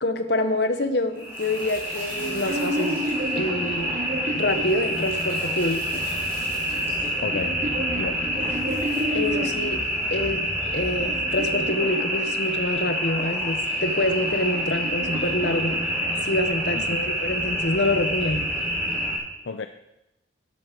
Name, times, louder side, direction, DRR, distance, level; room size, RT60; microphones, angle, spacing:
voice 1, 0.0-3.0 3.4-4.0 4.3-6.0 9.1-9.8 10.1-10.4 10.7-15.8 16.2-18.5, left 1 dB, 60° left, 8 dB, 1.3 m, -26 dB
sound 1, 1.1-19.2, equal, 15° right, 5.6 m, -27 dB
sound 2, 2.1-5.5 6.4-9.8 10.5-12.9 14.0-16.4, right 1 dB, 40° right, 1.1 m, -32 dB
voice 2, 7.2-7.6 7.9-8.2 16.7-17.1 19.4-19.7, left 4 dB, 75° left, 9 dB, 0.6 m, -32 dB
12.5 x 12.0 x 5.2 m, 0.93 s
head